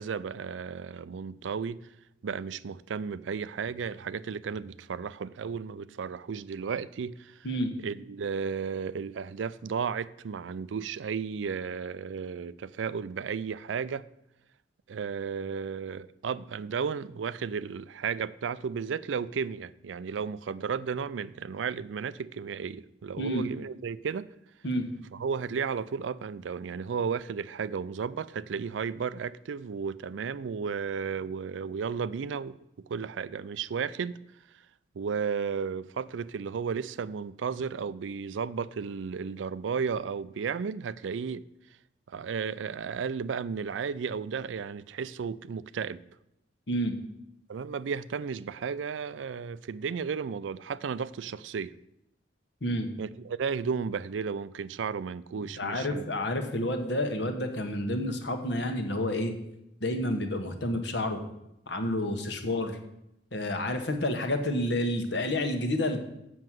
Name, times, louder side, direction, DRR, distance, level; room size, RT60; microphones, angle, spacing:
voice 1, 0.0-1.8 2.2-7.5 7.8-14.0 14.9-24.3 25.1-34.2 34.9-41.4 42.1-46.0 47.5-51.7 53.0-56.1, right 6 dB, 85° right, 0.4 m, -34 dB
voice 2, 55.5-59.3 59.8-61.2 61.7-62.8 63.3-66.0, left 1 dB, 70° left, 1.3 m, -29 dB
7.7 x 6.4 x 7.4 m
head